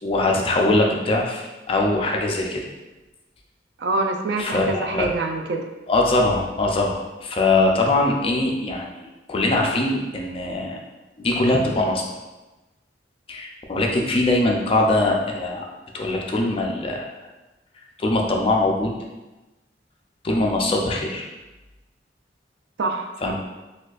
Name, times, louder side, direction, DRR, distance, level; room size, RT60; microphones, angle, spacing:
voice 1, 0.0-2.6 4.4-5.1 5.9-10.8 11.2-12.0 13.3-15.7 15.9-17.1 18.0-18.9 20.2-21.2 23.2-23.3, left 2 dB, 30° left, 0 dB, 0.4 m, -22 dB
voice 2, 3.8-5.6 22.8-23.3, right 2 dB, 65° right, 4 dB, 0.4 m, -25 dB
4.3 x 2.3 x 2.3 m, 1.1 s
head